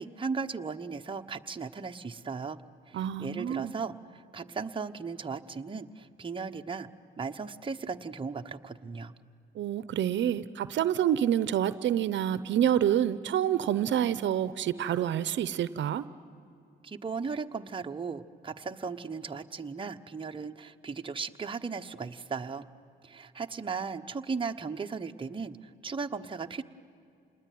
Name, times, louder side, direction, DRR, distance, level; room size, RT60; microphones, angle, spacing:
voice 1, 0.0-2.6 2.9-6.9 7.2-9.1 16.8-22.7 23.0-26.6, right 5 dB, 25° right, 5 dB, 1.1 m, -37 dB
voice 2, 2.9-3.7 9.5-16.0, right 10 dB, 70° right, 14 dB, 0.8 m, -27 dB
28.0 x 20.5 x 9.4 m, 2.6 s
cardioid pair, 90°, 20 cm